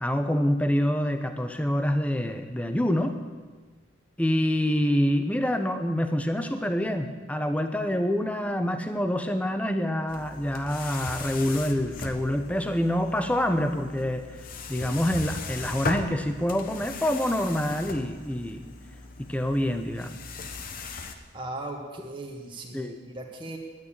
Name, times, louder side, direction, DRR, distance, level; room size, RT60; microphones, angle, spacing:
voice 1, 0.0-3.1 4.2-14.4 14.7-18.7 19.2-20.2 22.7-23.0, equal, 5° left, 7 dB, 0.8 m, -26 dB
sound 1, 10.1-21.2, left 3 dB, 45° left, 1.0 m, -38 dB
voice 2, 21.3-23.6, right 2 dB, 25° right, 0 dB, 1.5 m, -38 dB
10.5 x 9.4 x 9.9 m, 1.4 s
head